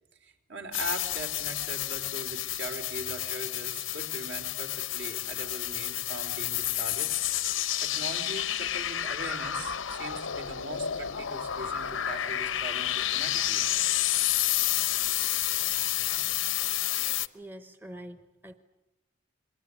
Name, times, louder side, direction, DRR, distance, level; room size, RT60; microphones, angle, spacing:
voice 1, 0.2-7.1 7.8-13.7, right 1 dB, 65° right, 5 dB, 4.0 m, -40 dB
sound 1, 0.7-17.3, left 12 dB, 85° left, 0.9 m, -30 dB
voice 2, 17.3-18.5, right 1 dB, 10° right, 9 dB, 0.9 m, -45 dB
27.0 x 21.5 x 9.8 m, 0.97 s
head